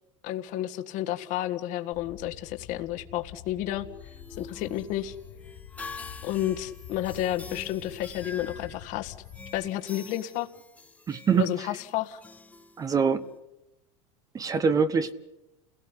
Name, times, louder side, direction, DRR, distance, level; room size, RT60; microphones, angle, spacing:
voice 1, 0.2-3.9 4.4-5.2 6.2-9.2 9.5-10.5 11.4-12.2, left 13 dB, 55° left, 7 dB, 1.7 m, -31 dB
sound 1, 1.9-9.7, left 11 dB, 75° left, 3.2 m, -47 dB
sound 2, 3.8-13.4, left 3 dB, 10° left, 1.5 m, -46 dB
voice 2, 11.1-11.5 12.8-13.2 14.3-15.1, right 6 dB, 25° right, 12 dB, 1.1 m, -24 dB
29.5 x 17.5 x 9.9 m, 0.97 s
supercardioid pair, 130°, 16 cm